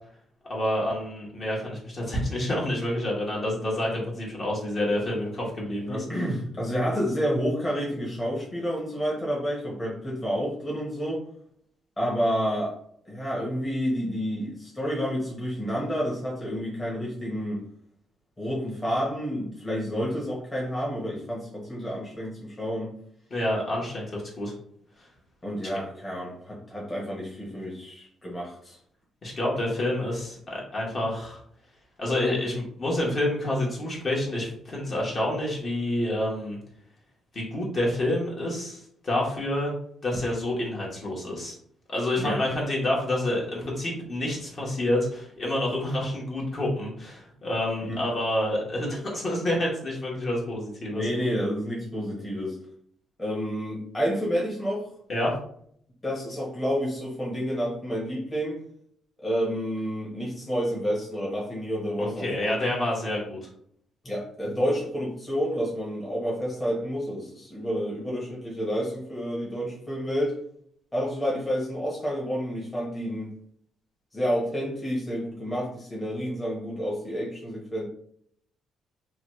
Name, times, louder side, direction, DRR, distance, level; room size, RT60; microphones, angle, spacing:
voice 1, 0.5-6.0 23.3-24.5 25.0-25.1 29.2-31.4 32.0-36.6 37.3-39.7 40.0-41.6 41.9-51.1 55.1-55.3 62.0-63.5, left 1 dB, 45° left, -3 dB, 1.2 m, -28 dB
voice 2, 5.9-11.2 12.0-12.8 13.1-17.6 18.4-22.9 25.4-28.8 42.2-42.4 47.9-48.0 51.0-52.6 53.2-54.9 56.0-58.6 59.2-62.6 64.0-70.4 70.9-73.3 74.1-77.8, equal, 20° left, -4 dB, 1.1 m, -29 dB
3.0 x 2.3 x 3.0 m, 0.64 s
cardioid pair, 90°, 0 cm